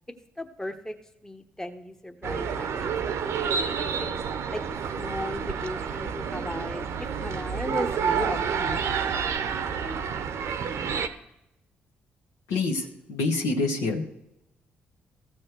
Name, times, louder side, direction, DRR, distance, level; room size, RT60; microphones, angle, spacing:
voice 1, 0.4-0.9 1.2-2.9 3.2-4.2 4.5-4.6 5.0-8.8, left 1 dB, 10° left, 5 dB, 1.2 m, -36 dB
sound 1, 2.2-11.1, right 6 dB, 60° right, 0.8 m, -29 dB
voice 2, 12.5-14.0, left 3 dB, 70° left, 1 dB, 1.5 m, -26 dB
15.0 x 6.3 x 4.6 m, 0.85 s
hypercardioid pair, 40°, 5 cm